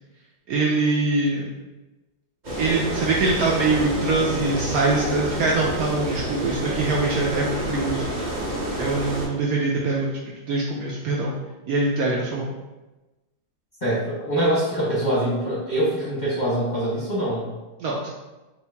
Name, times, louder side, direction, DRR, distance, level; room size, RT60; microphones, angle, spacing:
voice 1, 0.5-1.5 2.6-8.1 8.8-11.3 11.7-12.5 17.8-18.1, right 3 dB, 70° right, -3 dB, 0.9 m, -23 dB
sound 1, 2.4-9.3, right 1 dB, 30° right, 0.9 m, -28 dB
voice 2, 13.8-17.5, right 1 dB, 30° left, -7 dB, 0.9 m, -24 dB
5.2 x 2.5 x 3.4 m, 1.1 s
omnidirectional pair, 2.0 m